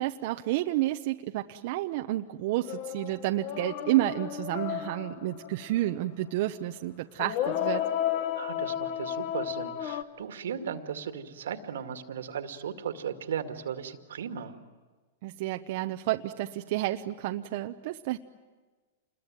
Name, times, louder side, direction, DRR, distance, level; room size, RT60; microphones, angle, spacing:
voice 1, 0.0-7.8 15.2-18.2, right 16 dB, 55° right, 6 dB, 0.9 m, -30 dB
sound 1, 2.6-5.9 7.2-10.0, left 11 dB, 45° left, 1.4 m, -32 dB
voice 2, 8.4-14.6, right 8 dB, 85° right, 8 dB, 2.2 m, -36 dB
28.0 x 21.5 x 9.2 m, 1.3 s
hypercardioid pair, 145°, 0 cm